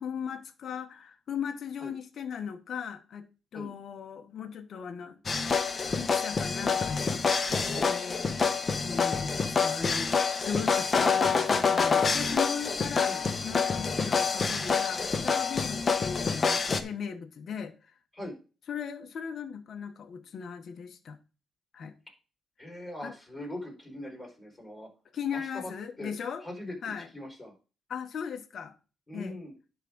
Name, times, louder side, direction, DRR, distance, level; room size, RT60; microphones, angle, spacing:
voice 1, 0.0-3.3 3.5-5.2 6.0-7.2 7.8-8.3 8.8-10.1 10.4-17.8 18.7-21.2 21.7-21.9 23.0-23.1 25.1-26.4 26.8-27.1 27.9-28.7 29.1-29.4, left 7 dB, 55° left, 1.0 m, -37 dB
sound 1, 5.3-16.8, left 5 dB, 35° left, 1.0 m, -27 dB
voice 2, 22.6-24.9 25.3-25.7 26.0-26.1 26.4-26.7 27.1-27.5 29.1-29.5, left 1 dB, 15° left, 4.4 m, -41 dB
10.5 x 3.7 x 6.1 m
cardioid pair, 90°, 0 cm